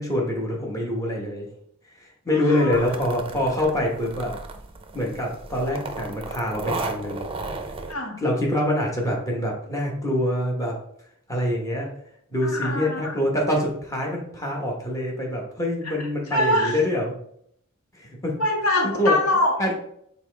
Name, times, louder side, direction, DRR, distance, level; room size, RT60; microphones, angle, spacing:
voice 1, 0.0-1.5 2.2-4.4 4.9-7.3 8.2-10.7 11.3-11.9 12.3-17.1 18.0-18.4 19.0-19.1 19.6-19.7, left 1 dB, 15° left, -2 dB, 1.2 m, -25 dB
voice 2, 2.3-2.8 7.9-8.2 12.4-13.1 16.0-16.7 18.4-19.7, left 1 dB, 80° left, 0 dB, 1.6 m, -24 dB
sound 1, 2.7-7.9, right 3 dB, 25° right, 0.6 m, -35 dB
7.1 x 4.1 x 3.4 m, 0.70 s
head